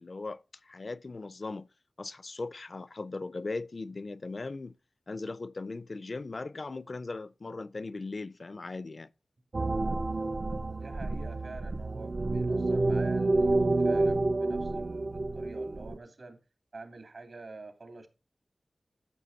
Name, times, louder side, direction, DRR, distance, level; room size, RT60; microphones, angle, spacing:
voice 1, 0.0-1.7 2.0-4.8 5.1-9.1, left 3 dB, 55° left, 0.4 m, -38 dB
sound 1, 9.5-16.0, right 2 dB, 45° right, 0.5 m, -29 dB
voice 2, 10.6-16.4 16.7-18.1, right 3 dB, 70° right, 2.8 m, -47 dB
14.0 x 7.4 x 2.7 m
wide cardioid pair, 75°, 0 cm